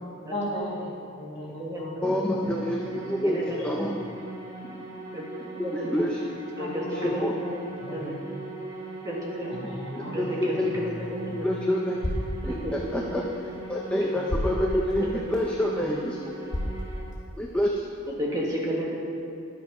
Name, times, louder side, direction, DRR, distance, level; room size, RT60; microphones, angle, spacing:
voice 1, 0.0-2.6 3.5-3.9 6.6-7.5 7.8-8.2 9.5-11.4, equal, 30° left, -5 dB, 1.8 m, -37 dB
voice 2, 2.0-3.9 5.7-6.2 6.9-7.3 10.2-10.7 11.4-12.0 12.4-13.3 13.7-16.2 17.4-17.7, left 1 dB, 5° left, -1 dB, 0.5 m, -27 dB
sound 1, 2.4-17.0, right 2 dB, 30° right, 2.5 m, -40 dB
voice 3, 3.2-3.6 5.1-5.2 5.6-6.0 6.6-7.6 7.9-8.1 9.0-9.5 10.1-11.5 12.5-13.1 15.0-15.2 18.1-19.0, equal, 15° right, -4 dB, 1.6 m, -32 dB
sound 2, 10.8-17.7, equal, 55° left, 2.4 m, -36 dB
11.0 x 7.4 x 4.9 m, 2.6 s
head